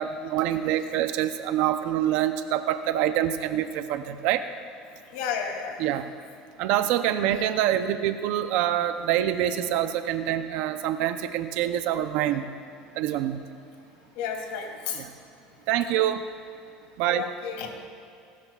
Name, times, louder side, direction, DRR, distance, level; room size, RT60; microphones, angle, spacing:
voice 1, 0.0-4.4 5.8-6.1 6.6-12.5 13.0-13.4 15.0-15.1 15.7-16.2 17.0-17.3, right 11 dB, 70° right, 9 dB, 0.7 m, -26 dB
voice 2, 5.1-5.8 14.1-15.0 17.1-17.7, left 7 dB, 80° left, 1 dB, 3.0 m, -32 dB
30.0 x 13.0 x 2.5 m, 2.5 s
supercardioid pair, 120°, 3 cm